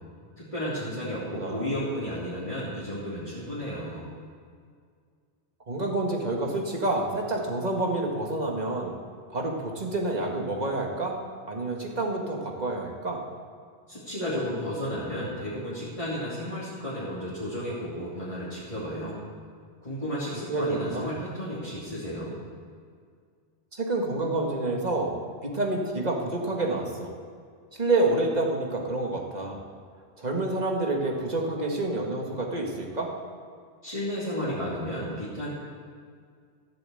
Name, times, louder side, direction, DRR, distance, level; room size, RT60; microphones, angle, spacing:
voice 1, 0.4-4.1 13.9-19.2 19.8-22.3 33.8-35.5, equal, 30° left, -10 dB, 3.1 m, -33 dB
voice 2, 1.3-1.7 5.7-8.9 9.3-11.2 11.5-13.2 20.5-21.1 23.7-25.1 25.4-27.1 27.7-29.6 30.2-33.1, right 2 dB, 40° right, 0 dB, 1.9 m, -28 dB
15.0 x 7.9 x 7.8 m, 2.1 s
omnidirectional pair, 1.1 m